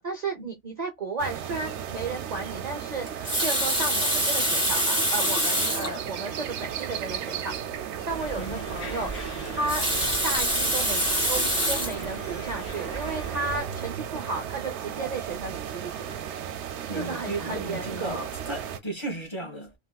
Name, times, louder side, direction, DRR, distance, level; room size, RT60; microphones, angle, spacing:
voice 1, 0.0-7.5 7.8-9.8 10.2-11.0 11.3-16.1 16.9-18.3, right 3 dB, 40° right, 0.6 m, -34 dB
sound 1, 1.2-18.8, right 9 dB, 70° right, 0.8 m, -35 dB
Water tap faucet, 3.1-6.0 6.8-6.9 7.1-7.2 9.4-12.0 12.7-12.9, equal, 5° right, 1.4 m, -25 dB
sound 2, 8.1-13.6, right 2 dB, 55° left, 1.8 m, -39 dB
voice 2, 16.9-19.7, right 2 dB, 20° left, 1.5 m, -35 dB
3.3 x 2.7 x 2.3 m
omnidirectional pair, 1.3 m